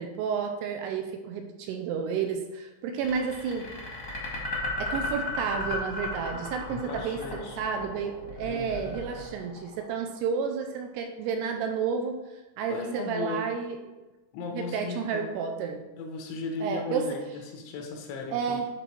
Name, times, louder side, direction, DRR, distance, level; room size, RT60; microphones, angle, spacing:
voice 1, 0.0-3.7 4.8-12.2 12.6-13.8 14.5-15.9 16.6-17.2 18.3-18.7, right 6 dB, 80° right, 4 dB, 2.5 m, -31 dB
sound 1, 3.0-10.2, left 2 dB, 45° left, 1.0 m, -35 dB
voice 2, 6.7-7.6 8.5-8.9 12.7-13.5 14.3-15.3 16.0-18.6, left 4 dB, 90° left, 2 dB, 3.5 m, -36 dB
10.0 x 4.0 x 4.4 m, 1.1 s
omnidirectional pair, 5.1 m